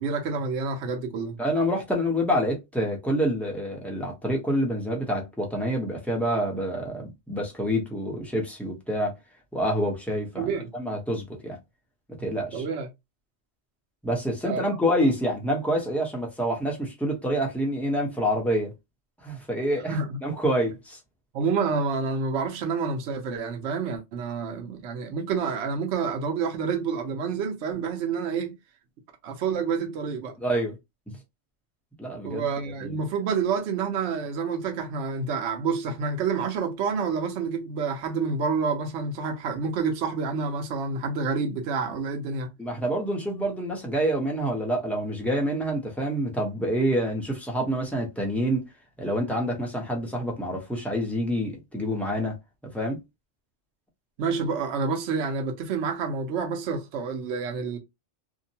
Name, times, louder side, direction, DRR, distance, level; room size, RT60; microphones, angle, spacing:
voice 1, 0.0-1.4 10.3-10.7 12.5-12.9 14.4-14.6 19.9-20.2 21.3-28.5 29.2-30.4 32.2-42.5 54.2-57.8, right 5 dB, 70° right, 0.9 m, -28 dB
voice 2, 1.4-9.1 9.5-11.6 12.2-12.7 14.0-18.7 19.2-21.0 30.4-30.8 31.1-31.2 32.0-32.5 32.8-33.0 42.6-48.6 49.0-52.3 52.6-53.0, equal, ahead, 0.6 m, -27 dB
2.7 x 2.1 x 2.7 m
omnidirectional pair, 1.2 m